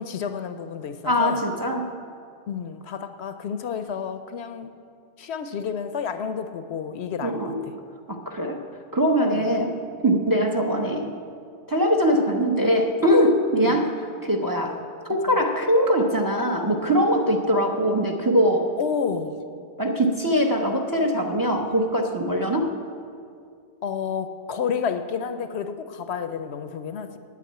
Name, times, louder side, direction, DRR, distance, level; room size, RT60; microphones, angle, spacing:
voice 1, 0.0-1.4 2.5-4.7 5.2-7.7 9.3-9.5 13.5-13.9 15.3-15.4 18.8-19.3 23.8-27.2, left 6 dB, 70° left, 9 dB, 0.9 m, -30 dB
voice 2, 1.1-1.9 7.2-7.6 8.1-8.6 8.9-11.1 11.7-13.9 14.2-14.8 15.1-18.7 19.8-22.7, equal, 20° right, 3 dB, 0.7 m, -22 dB
9.6 x 8.5 x 8.5 m, 2.3 s
omnidirectional pair, 1.2 m